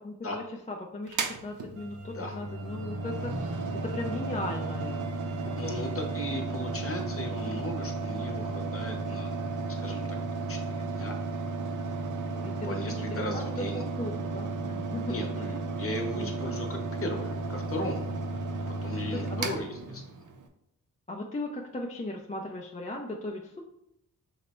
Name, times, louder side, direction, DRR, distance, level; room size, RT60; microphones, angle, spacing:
voice 1, 0.0-5.0 5.4-5.8 12.4-15.2 16.1-16.3 19.1-19.5 21.1-23.6, left 1 dB, 20° left, 0 dB, 0.4 m, -37 dB
Mechanical fan, 1.1-20.5, right 3 dB, 60° right, 0.6 m, -34 dB
sound 1, 1.8-6.8, right 6 dB, 85° right, 1.0 m, -55 dB
voice 2, 5.6-9.4 9.8-10.0 10.3-11.2 12.2-13.8 15.1-18.1 18.7-20.0, left 1 dB, 40° left, 2 dB, 0.9 m, -37 dB
5.6 x 2.0 x 4.2 m, 0.77 s
wide cardioid pair, 100°, 34 cm